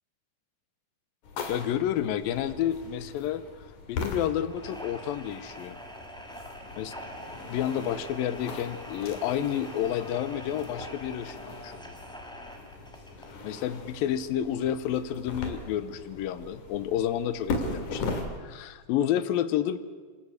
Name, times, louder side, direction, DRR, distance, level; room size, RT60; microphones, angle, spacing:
sound 1, 1.2-18.2, left 3 dB, 60° left, 3.4 m, -39 dB
voice 1, 1.5-3.4 3.9-5.8 6.8-6.9 7.5-12.0 13.4-18.1 18.4-19.8, left 10 dB, 80° left, 14 dB, 2.6 m, -30 dB
sound 2, 4.5-13.4, equal, ahead, 1.1 m, -45 dB
26.0 x 12.5 x 8.0 m, 1.4 s
omnidirectional pair, 4.1 m